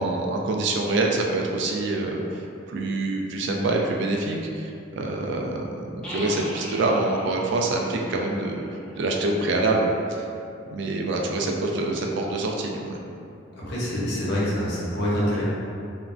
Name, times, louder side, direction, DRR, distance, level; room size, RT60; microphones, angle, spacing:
voice 1, 0.0-8.6 9.0-10.3 10.7-13.0, right 2 dB, 60° right, 0 dB, 0.3 m, -26 dB
sound 1, 6.0-9.7, equal, 5° left, 0.4 m, -40 dB
voice 2, 13.6-15.4, equal, 55° left, -8 dB, 0.7 m, -26 dB
3.0 x 2.1 x 2.5 m, 2.5 s
head